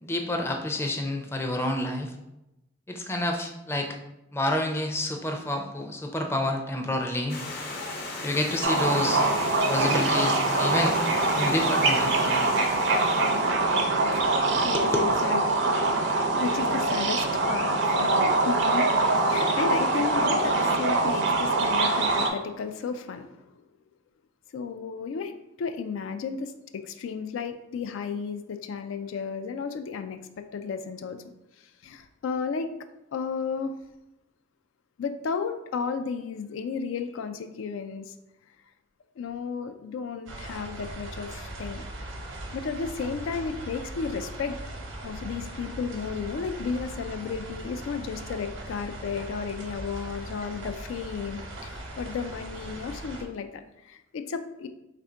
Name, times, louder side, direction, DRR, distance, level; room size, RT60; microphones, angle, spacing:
voice 1, 0.0-2.1 2.9-4.0 4.3-7.4 8.2-9.2 9.7-11.0 11.3-12.5 13.7-13.8 14.6-15.2, left 1 dB, 15° left, 3 dB, 0.4 m, -29 dB
Stream, 7.3-13.8, left 2 dB, 55° left, 0.7 m, -37 dB
sound 1, 8.6-22.3, right 2 dB, 65° right, 0.5 m, -24 dB
voice 2, 14.1-15.4 15.8-23.5 24.5-25.3 25.6-31.2 31.8-32.7 33.1-33.7 35.0-38.1 39.2-41.8 42.5-44.6 45.0-54.7, left 5 dB, 90° left, 8 dB, 0.3 m, -33 dB
sound 2, 40.3-53.2, right 1 dB, 90° right, 0.9 m, -39 dB
3.4 x 2.5 x 4.3 m, 0.91 s
head